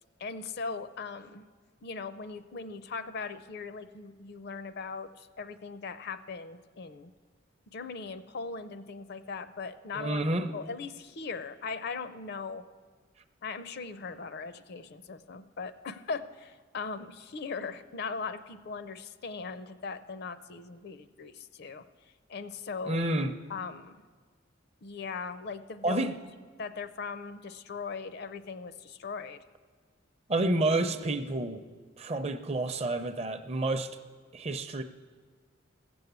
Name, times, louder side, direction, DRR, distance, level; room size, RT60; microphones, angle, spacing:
voice 1, 0.2-1.4 1.8-7.1 7.7-10.2 10.5-12.6 13.4-21.8 22.3-23.0 23.5-24.0 24.8-26.1 26.6-29.4, left 4 dB, 55° left, 13 dB, 0.5 m, -39 dB
voice 2, 9.9-10.5 22.8-23.3 25.8-26.2 30.3-31.6 32.0-33.9 34.3-34.8, right 2 dB, 30° right, 9 dB, 0.6 m, -29 dB
15.5 x 7.0 x 8.1 m, 1.5 s
head